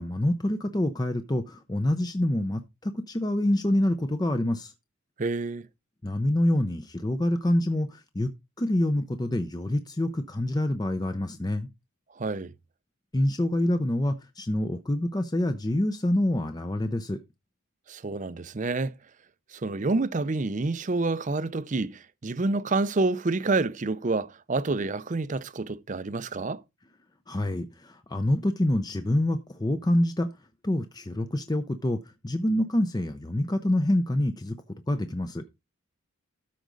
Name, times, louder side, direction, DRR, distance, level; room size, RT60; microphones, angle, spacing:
voice 1, 0.0-4.7 6.0-8.3 8.6-11.7 13.1-17.2 27.3-30.3 30.6-35.4, left 1 dB, 20° left, 0.6 m, -26 dB
voice 2, 5.2-5.7 12.2-12.5 17.9-18.9 19.5-26.6, right 3 dB, 35° right, 0.5 m, -28 dB
13.0 x 5.1 x 3.8 m
head